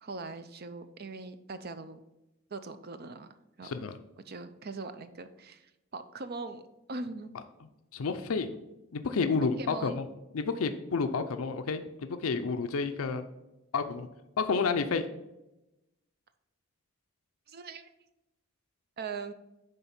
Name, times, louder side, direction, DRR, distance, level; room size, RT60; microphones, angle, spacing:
voice 1, 0.0-2.0 2.5-3.3 3.6-3.7 4.2-5.7 5.9-6.6 6.9-7.3 9.6-10.0 17.5-17.9 19.0-19.3, right 3 dB, 45° right, 10 dB, 0.5 m, -40 dB
voice 2, 3.6-4.0 7.9-8.6 8.9-10.1 10.3-13.2 13.7-14.1 14.4-15.1, left 4 dB, 75° left, 8 dB, 0.5 m, -30 dB
9.6 x 3.4 x 5.9 m, 0.95 s
head